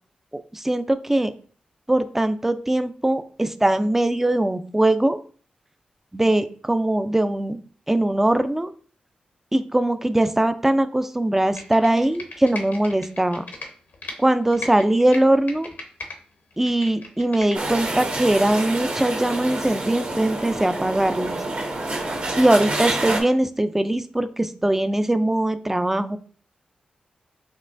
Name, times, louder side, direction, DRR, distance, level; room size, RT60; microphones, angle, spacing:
voice 1, 0.5-1.3 1.9-5.2 6.1-7.6 7.9-8.7 9.5-13.4 14.2-15.7 16.6-21.4 22.4-26.2, right 1 dB, 10° right, 10 dB, 0.4 m, -21 dB
Computer keyboard, 11.4-14.2 14.5-16.2 16.5-17.9 18.3-18.4, left 3 dB, 75° left, 0.8 m, -37 dB
sound 1, 17.5-23.2, right 2 dB, 55° right, 1.2 m, -28 dB
5.4 x 3.0 x 2.6 m, 0.43 s
cardioid pair, 65°, 3 cm